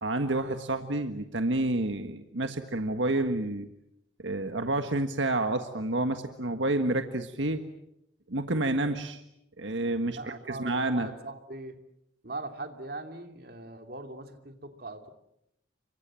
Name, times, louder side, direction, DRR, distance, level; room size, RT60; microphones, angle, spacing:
voice 1, 0.0-3.7 4.2-7.6 8.3-9.2 9.6-11.1, right 2 dB, 75° right, 7 dB, 1.6 m, -29 dB
voice 2, 10.1-11.7 12.2-15.1, right 2 dB, 50° right, 6 dB, 2.8 m, -41 dB
30.0 x 25.0 x 7.6 m, 0.80 s
head